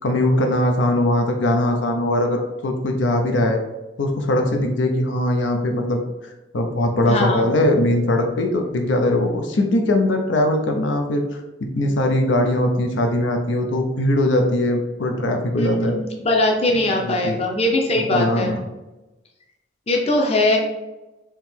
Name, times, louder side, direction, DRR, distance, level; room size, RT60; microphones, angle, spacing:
voice 1, 0.0-3.6 4.0-6.0 6.5-16.0 17.0-17.4 18.1-18.6, left 1 dB, 85° left, 4 dB, 0.6 m, -20 dB
voice 2, 7.0-7.4 15.6-18.6 19.9-20.6, left 1 dB, 35° left, 1 dB, 0.7 m, -21 dB
3.7 x 2.9 x 4.4 m, 1.0 s
head